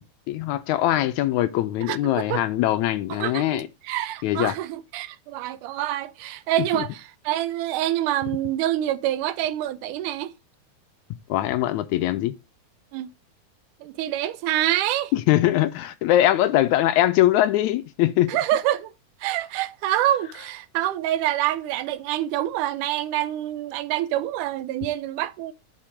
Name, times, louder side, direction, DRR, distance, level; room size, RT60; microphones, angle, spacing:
voice 1, 0.3-3.7 4.2-4.6 6.7-6.8 11.3-12.3 15.1-18.4, left 14 dB, 80° left, 1.9 m, -22 dB
voice 2, 1.8-2.4 3.1-10.3 12.9-13.1 13.8-15.1 18.3-18.9 19.2-25.5, right 13 dB, 90° right, 2.2 m, -26 dB
6.4 x 6.0 x 4.9 m
omnidirectional pair, 3.5 m